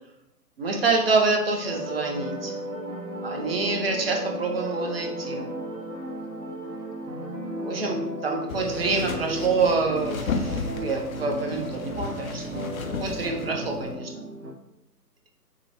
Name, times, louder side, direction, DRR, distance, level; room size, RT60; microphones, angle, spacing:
voice 1, 0.6-2.6 3.2-5.5 7.6-12.7 13.0-14.2, right 4 dB, 40° right, 2 dB, 0.6 m, -27 dB
sound 1, 1.6-14.5, equal, 75° right, 0.9 m, -34 dB
sound 2, 8.5-13.9, left 4 dB, 60° left, 0.6 m, -34 dB
6.0 x 2.1 x 2.9 m, 0.84 s
figure-of-eight pair, 135°, 48 cm